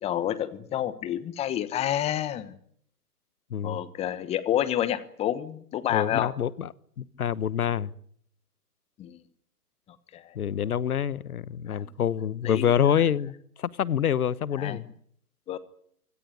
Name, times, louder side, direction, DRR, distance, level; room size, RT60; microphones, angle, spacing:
voice 1, 0.0-2.6 3.6-6.3 9.0-9.2 10.1-10.3 11.7-11.9 12.4-12.7 14.6-14.8 15.5-15.6, left 11 dB, 15° left, 16 dB, 1.1 m, -29 dB
voice 2, 5.9-6.7 7.0-7.9 10.3-14.9, left 9 dB, 65° left, 20 dB, 1.2 m, -26 dB
24.5 x 17.0 x 9.5 m, 0.68 s
figure-of-eight pair, 130°, 47 cm